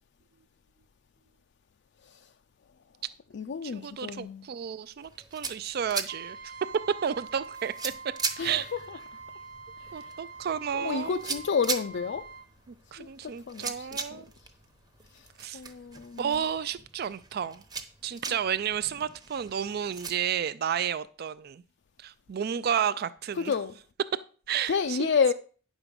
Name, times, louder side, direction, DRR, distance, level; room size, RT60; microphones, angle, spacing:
voice 1, 2.0-2.3 3.3-4.4 8.4-9.2 9.8-10.1 10.7-12.3 13.0-14.5 15.1-15.3 15.5-16.4 18.3-18.4 23.3-23.7 24.7-25.3, left 6 dB, 65° left, 0.4 m, -31 dB
voice 2, 3.7-6.5 7.0-7.9 8.4-8.7 9.9-11.3 12.9-14.3 15.4-15.6 16.2-17.6 18.0-21.6 22.0-23.5 24.5-25.1, right 8 dB, 55° right, 0.4 m, -32 dB
sound 1, 5.0-20.1, right 4 dB, 20° right, 0.9 m, -40 dB
Trumpet, 6.1-12.5, right 4 dB, 80° right, 0.9 m, -45 dB
9.7 x 6.2 x 5.1 m
head